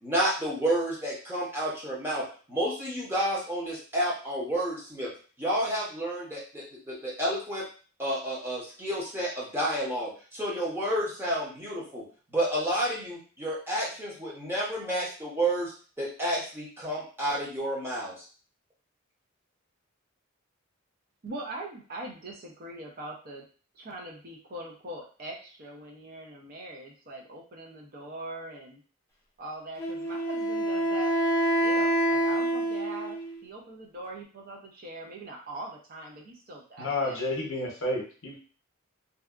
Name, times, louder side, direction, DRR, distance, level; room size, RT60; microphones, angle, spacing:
voice 1, 0.0-5.1 5.4-7.6 8.0-12.0 12.3-18.2, right 1 dB, 10° right, -6 dB, 0.8 m, -30 dB
voice 2, 21.2-23.4 23.7-28.8 29.4-31.1 31.6-37.2, right 2 dB, 40° right, -1 dB, 0.5 m, -42 dB
Wind instrument woodwind instrument, 29.8-33.4, right 1 dB, 10° left, 0.4 m, -27 dB
voice 3, 36.8-38.4, left 2 dB, 65° left, -1 dB, 0.8 m, -30 dB
2.6 x 2.2 x 2.4 m, 0.39 s
head